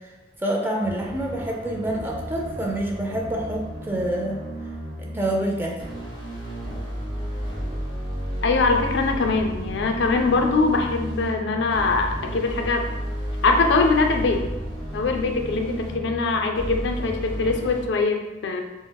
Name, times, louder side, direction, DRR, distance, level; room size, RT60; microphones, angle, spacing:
voice 1, 0.4-4.4 5.0-5.9, right 1 dB, 10° right, -1 dB, 0.3 m, -27 dB
Wild Electronic West, 0.8-17.8, equal, 25° right, 1.1 m, -32 dB
voice 2, 8.4-12.8 13.4-14.4 14.9-18.6, left 3 dB, 70° left, 3 dB, 0.4 m, -22 dB
4.4 x 2.0 x 2.2 m, 1.1 s
head